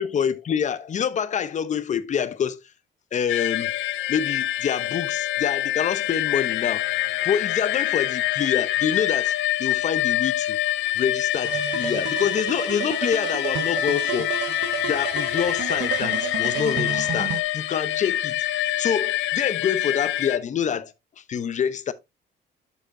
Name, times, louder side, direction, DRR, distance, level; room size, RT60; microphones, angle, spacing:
voice 1, 0.0-2.6 3.1-3.8 4.1-6.9 7.2-10.6 11.0-14.3 14.8-21.9, left 7 dB, 40° left, 0.7 m, -27 dB
sound 1, 3.3-20.4, left 14 dB, 75° left, 0.6 m, -26 dB
sound 2, 11.4-17.4, right 11 dB, 65° right, 0.8 m, -31 dB
7.5 x 6.7 x 2.6 m
cardioid pair, 120°, 19 cm